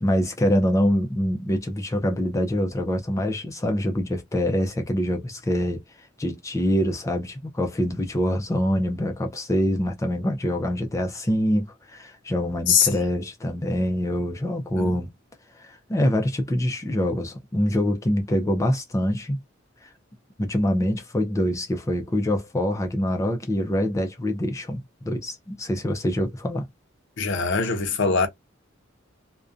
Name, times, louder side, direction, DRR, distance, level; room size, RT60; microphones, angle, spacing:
voice 1, 0.0-15.1 15.5-19.4 19.8-19.9 20.4-26.6, equal, 15° left, 0.4 m, -25 dB
voice 2, 12.7-13.0 14.8-15.0 27.2-28.3, left 5 dB, 65° left, 0.6 m, -22 dB
2.4 x 2.1 x 2.4 m
head